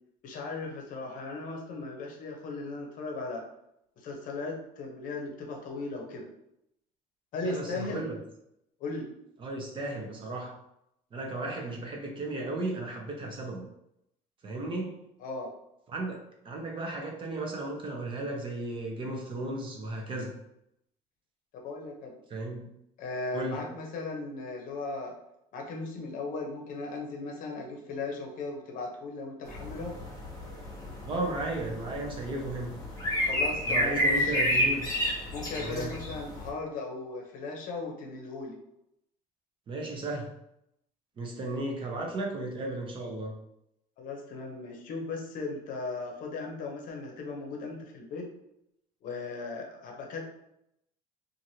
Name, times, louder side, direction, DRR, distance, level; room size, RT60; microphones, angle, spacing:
voice 1, 0.2-3.4 4.0-6.3 7.3-8.0 8.8-9.1 15.2-15.5 21.6-22.1 23.0-25.1 25.5-29.9 33.2-34.4 35.3-38.6 44.0-48.3 49.0-50.2, left 3 dB, 55° left, 0 dB, 0.7 m, -37 dB
voice 2, 7.4-8.2 9.4-10.6 11.1-13.6 14.4-15.0 15.9-20.3 22.3-22.7 23.3-23.7 31.0-32.7 33.7-34.8 35.6-36.0 39.7-40.3 41.2-43.3, right 2 dB, 30° right, 1 dB, 0.6 m, -35 dB
sound 1, 29.5-36.5, equal, 20° left, 1.0 m, -30 dB
2.9 x 2.5 x 2.7 m, 0.80 s
cardioid pair, 140°, 16 cm